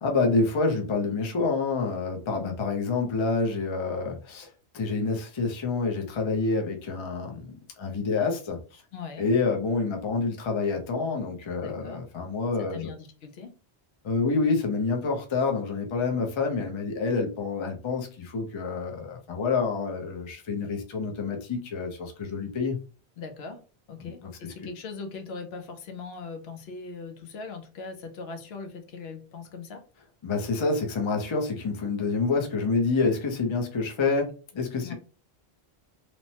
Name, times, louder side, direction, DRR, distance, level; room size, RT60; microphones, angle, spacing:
voice 1, 0.0-8.8 9.2-12.9 14.0-22.8 24.0-24.5 30.2-34.9, left 4 dB, 35° left, 2 dB, 0.5 m, -28 dB
voice 2, 8.9-9.3 11.6-12.1 12.6-13.5 23.2-23.6 23.9-29.8 34.8-34.9, left 4 dB, 75° left, 6 dB, 0.8 m, -40 dB
3.0 x 2.0 x 2.7 m, 0.36 s
omnidirectional pair, 1.1 m